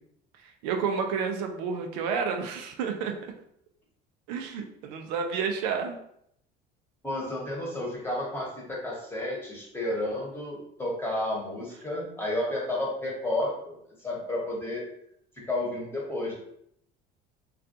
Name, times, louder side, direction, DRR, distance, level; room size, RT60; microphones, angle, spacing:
voice 1, 0.4-3.2 4.3-6.0, right 6 dB, 85° right, 4 dB, 0.4 m, -30 dB
voice 2, 7.0-14.8 15.4-16.3, left 1 dB, 10° left, -4 dB, 1.0 m, -31 dB
2.4 x 2.2 x 2.7 m, 0.72 s
supercardioid pair, 100°, 20 cm